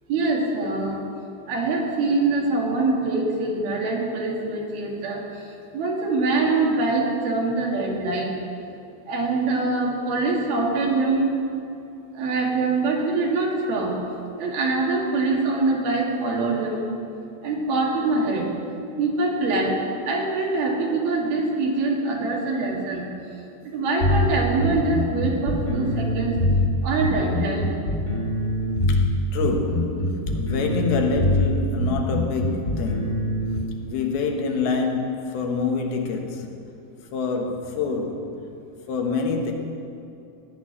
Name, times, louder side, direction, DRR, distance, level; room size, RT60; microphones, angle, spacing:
voice 1, 0.1-1.0 1.5-5.2 5.7-8.3 9.1-11.3 12.2-14.0 14.4-16.9 17.4-18.5 19.0-19.8 20.1-23.1 23.7-26.4 26.8-27.7, right 3 dB, 80° right, -2 dB, 4.0 m, -24 dB
sound 1, 24.0-33.6, left 1 dB, 30° left, 1.8 m, -24 dB
voice 2, 28.9-33.6 33.8-36.7 37.1-38.3 38.9-39.5, left 4 dB, 85° left, 3 dB, 3.2 m, -27 dB
17.0 x 6.4 x 9.8 m, 2.6 s
omnidirectional pair, 4.3 m